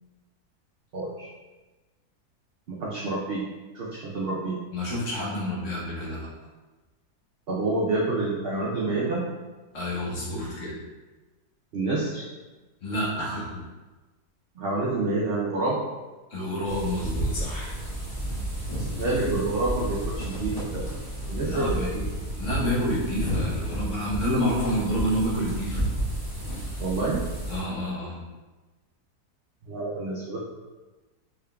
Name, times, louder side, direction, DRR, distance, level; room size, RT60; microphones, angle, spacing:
voice 1, 0.9-1.3 2.7-3.5 3.7-4.6 7.5-9.3 11.7-12.3 14.6-15.8 19.0-21.0 21.3-22.1 26.8-27.2 29.6-30.4, right 2 dB, 80° right, -5 dB, 0.5 m, -28 dB
voice 2, 4.7-6.3 9.7-10.8 12.8-13.6 16.3-17.7 21.4-21.9 22.4-25.8 27.5-28.2, equal, 55° left, -6 dB, 1.2 m, -29 dB
sound 1, 16.7-27.6, right 1 dB, 25° left, 1.4 m, -31 dB
3.7 x 3.6 x 2.2 m, 1.2 s
omnidirectional pair, 1.7 m